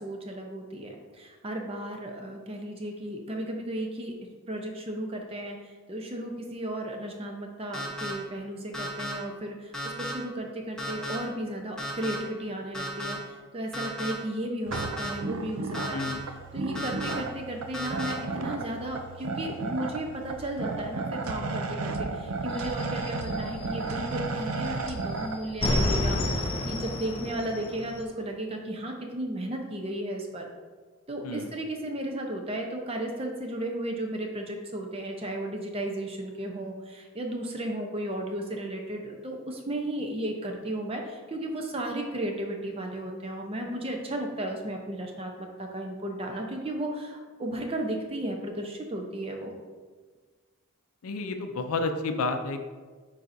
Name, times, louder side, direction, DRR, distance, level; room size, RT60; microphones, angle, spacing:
voice 1, 0.0-4.1 4.5-5.6 5.9-16.1 16.5-30.5 31.1-49.5, right 1 dB, 25° right, 2 dB, 0.6 m, -34 dB
sound 1, 7.7-8.1 8.7-9.1 9.7-10.1 10.8-11.2 11.8-12.2 12.7-13.1 13.7-14.1 14.7-15.1 15.7-16.1 16.7-17.1 17.7-18.1, equal, 5° left, 1.0 m, -34 dB
sound 2, 14.7-25.4, right 3 dB, 70° right, 0.5 m, -34 dB
voice 2, 15.9-16.2 31.2-31.5 51.0-52.6, left 3 dB, 75° left, 7 dB, 0.5 m, -30 dB
sound 3, 22.5-24.2 24.5-28.0, left 1 dB, 25° left, 0.5 m, -29 dB
9.1 x 4.1 x 2.6 m, 1.4 s
head